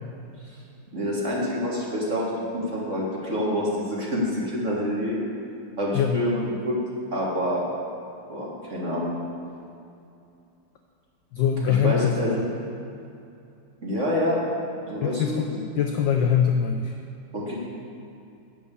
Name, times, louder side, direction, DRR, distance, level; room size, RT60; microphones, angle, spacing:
voice 1, 0.9-5.2 5.8-6.8 7.1-7.7 8.3-9.2 11.6-12.3 13.8-14.4 14.9-15.6 17.3-17.5, equal, 35° right, -5 dB, 1.7 m, -27 dB
voice 2, 11.3-12.4 15.0-16.9, left 8 dB, 75° left, 4 dB, 1.0 m, -23 dB
8.6 x 6.2 x 6.8 m, 2.6 s
omnidirectional pair, 2.4 m